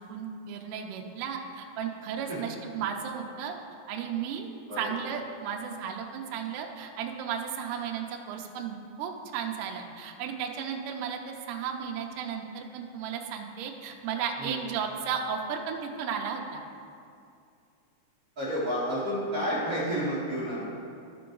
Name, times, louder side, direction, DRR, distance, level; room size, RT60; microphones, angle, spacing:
voice 1, 0.1-3.5 3.9-4.5 4.8-16.6, right 7 dB, 85° right, 2 dB, 1.8 m, -34 dB
voice 2, 18.3-20.7, equal, 55° right, -10 dB, 1.0 m, -30 dB
13.0 x 5.7 x 3.9 m, 2.5 s
omnidirectional pair, 4.8 m